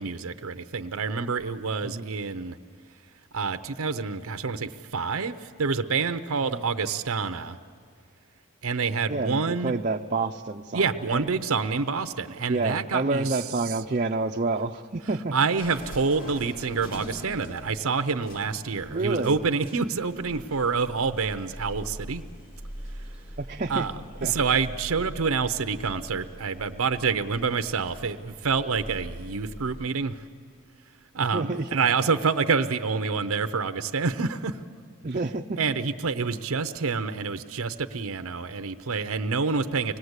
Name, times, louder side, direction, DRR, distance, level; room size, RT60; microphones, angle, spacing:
voice 1, 0.0-2.6 3.3-7.6 8.6-9.8 10.7-13.4 15.3-22.2 23.7-23.9 24.2-30.2 31.1-34.6 35.6-40.0, right 5 dB, 75° right, 9 dB, 0.7 m, -27 dB
voice 2, 9.1-11.2 12.5-15.3 18.9-19.3 23.4-23.9 24.2-24.3 31.3-31.7 35.0-35.6, right 3 dB, 35° right, 1 dB, 0.5 m, -28 dB
sound 1, 15.6-29.9, equal, 40° left, 2.2 m, -43 dB
25.0 x 19.5 x 8.1 m, 2.1 s
head